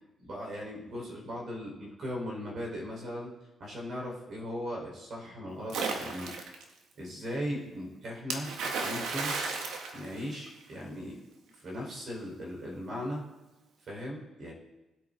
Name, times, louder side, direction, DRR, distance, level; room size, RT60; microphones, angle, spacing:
voice 1, 0.2-3.3 3.6-6.3 7.0-9.3 9.9-11.2 11.6-13.2 13.9-14.5, equal, 55° right, -2 dB, 4.8 m, -38 dB
Splash splatter, 5.7-6.6 8.3-10.7, right 4 dB, 80° right, 1.7 m, -34 dB
19.5 x 8.8 x 4.0 m, 1.0 s
cardioid pair, 90°, 0 cm